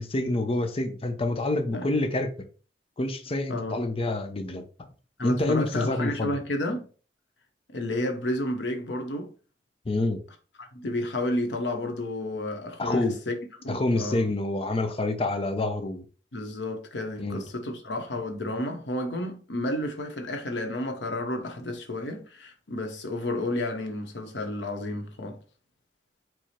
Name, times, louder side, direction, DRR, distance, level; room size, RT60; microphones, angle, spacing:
voice 1, 0.0-2.3 3.0-4.6 5.2-6.4 9.9-10.2 12.8-13.2 13.7-16.0 17.2-17.4, left 2 dB, 35° left, 0.6 m, -27 dB
voice 2, 3.5-3.9 5.2-6.9 7.7-9.3 10.6-13.4 13.6-14.3 16.3-25.4, left 1 dB, 85° left, 0.9 m, -31 dB
4.7 x 2.0 x 4.2 m
head